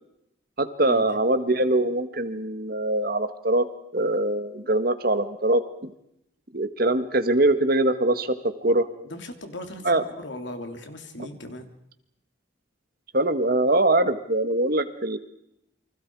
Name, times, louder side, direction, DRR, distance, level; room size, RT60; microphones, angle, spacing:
voice 1, 0.6-3.7 3.9-5.9 6.5-8.9 9.8-10.0 11.2-11.3 13.1-15.2, right 2 dB, 50° right, 10 dB, 1.6 m, -23 dB
voice 2, 9.0-11.7, left 1 dB, 70° left, 6 dB, 3.0 m, -38 dB
29.5 x 24.5 x 4.8 m, 0.79 s
head